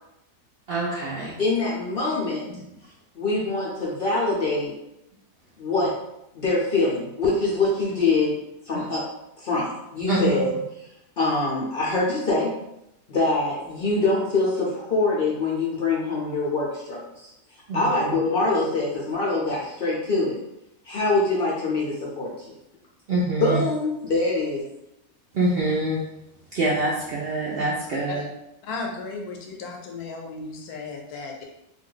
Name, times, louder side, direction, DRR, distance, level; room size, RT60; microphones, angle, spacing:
voice 1, 0.7-1.4 8.7-8.8 10.1-10.4 17.7-18.1 23.1-23.6 25.3-26.1 26.5-28.2, right 2 dB, 65° right, -6 dB, 0.6 m, -25 dB
voice 2, 1.4-2.5 3.1-4.7 5.6-5.9 6.3-8.3 8.7-9.0 9.4-10.5 11.2-12.5 13.1-17.3 17.7-20.4 20.8-22.5 23.4-24.6, left 3 dB, 60° left, -5 dB, 0.6 m, -24 dB
voice 3, 28.6-31.4, left 3 dB, 80° left, 1 dB, 1.1 m, -35 dB
2.5 x 2.3 x 3.7 m, 0.84 s
omnidirectional pair, 1.6 m